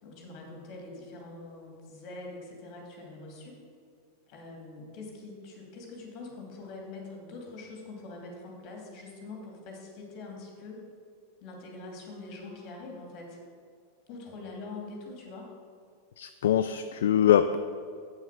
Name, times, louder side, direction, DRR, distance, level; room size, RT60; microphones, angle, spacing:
voice 1, 0.0-3.6 4.3-10.8 11.4-13.4 14.1-15.5, left 3 dB, 40° left, 0 dB, 2.6 m, -44 dB
voice 2, 16.2-17.6, left 10 dB, 60° left, 10 dB, 0.3 m, -23 dB
8.4 x 7.3 x 6.1 m, 2.2 s
figure-of-eight pair, 90°, 0 cm